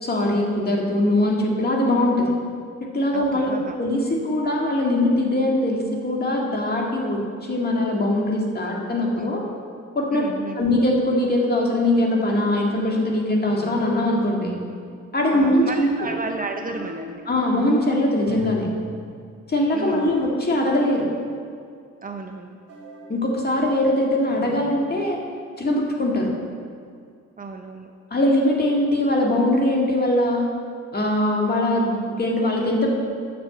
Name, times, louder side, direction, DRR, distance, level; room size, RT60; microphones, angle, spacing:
voice 1, 0.0-2.3 2.9-7.2 7.5-9.4 10.0-10.2 10.6-14.6 15.1-15.9 17.3-18.7 19.5-21.1 23.1-25.2 25.6-26.3 28.1-30.5 30.9-32.9, left 1 dB, 30° left, -1 dB, 1.9 m, -21 dB
voice 2, 3.1-3.8 10.1-10.7 15.3-17.2 19.7-20.1 22.0-22.6 27.4-27.9, right 3 dB, 30° right, 4 dB, 0.6 m, -33 dB
sound 1, 12.3-12.8 13.5-14.0 16.7-17.9 18.3-18.9 19.9-20.4 22.7-23.2 24.3-24.8, equal, 55° right, 1.9 m, -39 dB
7.7 x 6.7 x 6.5 m, 2.2 s
cardioid pair, 90°, 30 cm